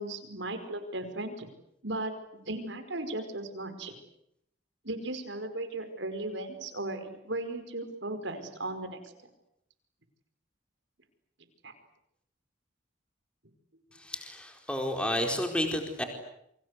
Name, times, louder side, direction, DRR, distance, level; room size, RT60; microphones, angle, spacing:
voice 1, 0.0-1.5 1.8-2.1 2.4-3.9 4.8-9.0 11.6-11.7, right 2 dB, 75° right, 8 dB, 5.0 m, -36 dB
voice 2, 14.0-16.0, left 1 dB, 5° left, 4 dB, 4.4 m, -31 dB
29.0 x 24.5 x 8.3 m, 0.76 s
head